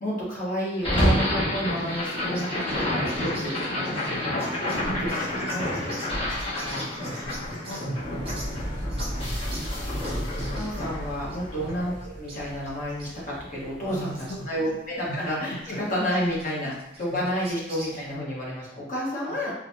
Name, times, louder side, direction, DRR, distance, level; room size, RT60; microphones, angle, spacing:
voice 1, 0.0-4.0 4.8-6.0 6.5-6.9 9.8-10.2 10.5-14.1 14.5-15.5 15.9-16.7 17.0-19.5, equal, 45° left, -5 dB, 1.2 m, -30 dB
sound 1, 0.8-13.0, left 1 dB, 30° left, 1.4 m, -29 dB
sound 2, 1.7-18.2, right 1 dB, 35° right, 0.8 m, -45 dB
voice 2, 4.0-4.4 7.0-9.5 11.5-11.7 13.8-14.8 15.1-15.2 15.5-16.0 16.4-16.7 17.1-17.3 19.2-19.4, right 1 dB, 65° left, -8 dB, 0.8 m, -41 dB
4.0 x 2.4 x 2.7 m, 0.85 s
head